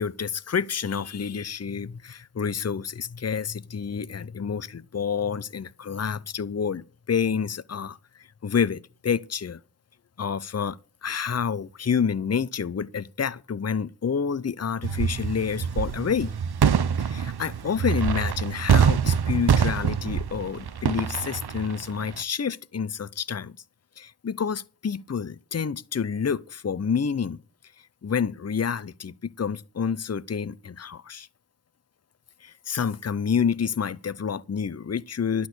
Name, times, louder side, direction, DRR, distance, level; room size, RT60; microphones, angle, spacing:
voice 1, 0.0-9.6 10.2-16.3 17.0-23.6 24.0-27.4 28.0-31.3 32.4-35.5, left 6 dB, 45° left, 0.6 m, -28 dB
sound 1, 14.8-22.2, right 7 dB, 90° right, 0.7 m, -25 dB
12.0 x 6.3 x 8.0 m
wide cardioid pair, 65°, 37 cm